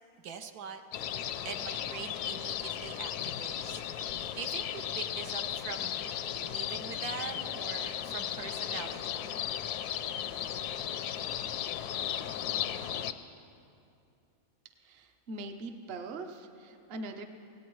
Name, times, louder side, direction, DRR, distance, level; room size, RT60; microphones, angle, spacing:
voice 1, 0.2-0.8 1.4-6.0 6.3-9.2, right 6 dB, 75° right, 6 dB, 1.1 m, -43 dB
sound 1, 0.9-13.1, left 10 dB, 80° left, 1.1 m, -35 dB
voice 2, 14.8-17.2, right 2 dB, 50° right, 6 dB, 0.9 m, -42 dB
18.0 x 17.5 x 3.1 m, 2.6 s
omnidirectional pair, 1.7 m